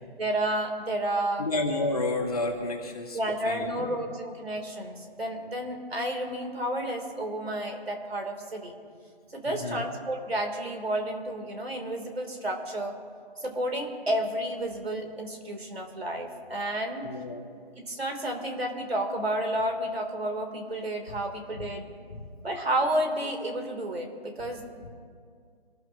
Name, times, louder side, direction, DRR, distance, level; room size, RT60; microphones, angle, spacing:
voice 1, 0.2-1.5 3.1-8.7 9.3-12.9 13.4-17.0 17.8-21.9 22.4-24.9, right 1 dB, 70° right, 2 dB, 3.7 m, -31 dB
voice 2, 1.4-3.2 3.4-3.9 9.5-9.9 17.0-17.4 22.1-22.2, left 2 dB, 35° left, 0 dB, 2.4 m, -30 dB
27.5 x 14.5 x 3.0 m, 2.1 s
figure-of-eight pair, 175°, 32 cm